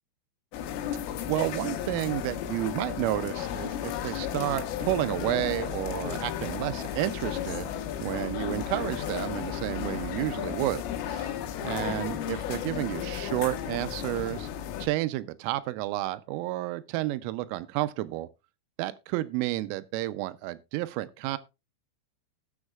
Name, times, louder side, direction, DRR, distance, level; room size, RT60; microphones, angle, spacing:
sound 1, 0.5-14.9, left 10 dB, 85° left, 3.6 m, -34 dB
voice 1, 1.3-7.7 8.0-10.8 11.1-11.4 11.6-14.5 14.8-18.3 18.8-21.4, right 16 dB, 85° right, 3.2 m, -31 dB
17.0 x 7.2 x 2.4 m
omnidirectional pair, 5.7 m